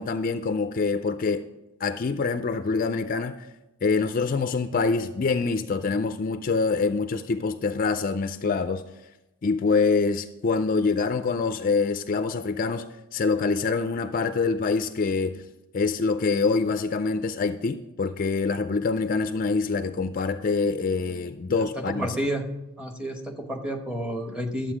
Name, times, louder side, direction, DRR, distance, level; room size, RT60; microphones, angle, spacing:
voice 1, 0.0-1.4 1.8-3.5 3.8-8.8 9.4-12.8 13.1-15.4 15.7-22.2, left 4 dB, 40° left, 10 dB, 0.3 m, -25 dB
voice 2, 21.6-22.5 22.8-24.7, equal, 5° right, 3 dB, 1.0 m, -30 dB
11.5 x 7.8 x 4.9 m, 0.98 s
head